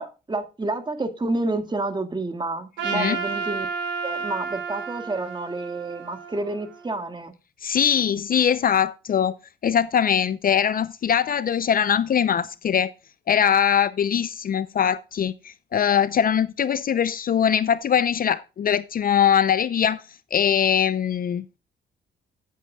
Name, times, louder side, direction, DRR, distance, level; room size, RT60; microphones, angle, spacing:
voice 1, 0.0-3.7 4.0-7.3, right 2 dB, 25° right, 1.9 m, -29 dB
Trumpet, 2.8-7.1, right 5 dB, 80° right, 3.8 m, -31 dB
voice 2, 7.6-9.4 9.6-12.9 13.3-20.0 20.3-21.4, left 8 dB, 45° left, 0.6 m, -22 dB
14.5 x 8.4 x 2.3 m
cardioid pair, 80°, 20 cm